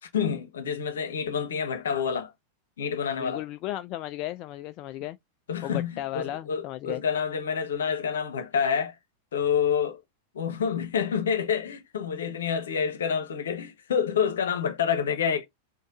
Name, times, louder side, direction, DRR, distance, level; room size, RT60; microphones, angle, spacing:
voice 1, 0.0-2.3 2.8-3.4 5.5-9.0 9.3-10.0 10.3-15.5, left 7 dB, 65° left, 0.9 m, -28 dB
voice 2, 3.2-5.2 5.6-7.0, left 14 dB, 40° left, 0.3 m, -35 dB
4.3 x 2.9 x 2.9 m
figure-of-eight pair, 90°, 0 cm